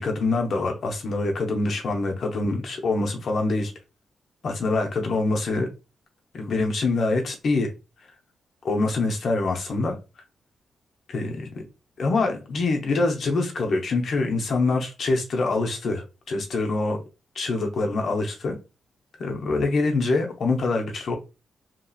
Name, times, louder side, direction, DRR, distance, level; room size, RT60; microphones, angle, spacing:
voice 1, 0.0-3.7 4.4-5.7 6.3-7.7 8.6-10.0 11.1-11.6 12.0-17.0 17.3-18.6 19.2-21.1, left 3 dB, 55° left, 0.7 m, -25 dB
2.9 x 2.8 x 2.3 m
wide cardioid pair, 140°, 0 cm